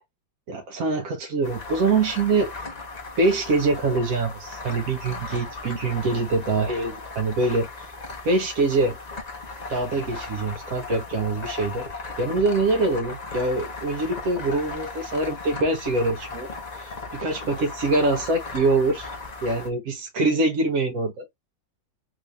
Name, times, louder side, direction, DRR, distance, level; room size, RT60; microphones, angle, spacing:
voice 1, 0.5-2.5 3.2-7.7 8.2-9.0 9.7-11.8 12.2-16.5 16.8-19.1 19.4-21.3, right 3 dB, 60° right, 1.0 m, -24 dB
sound 1, 1.4-19.7, left 3 dB, 60° left, 0.4 m, -37 dB
3.6 x 2.6 x 3.2 m
omnidirectional pair, 2.1 m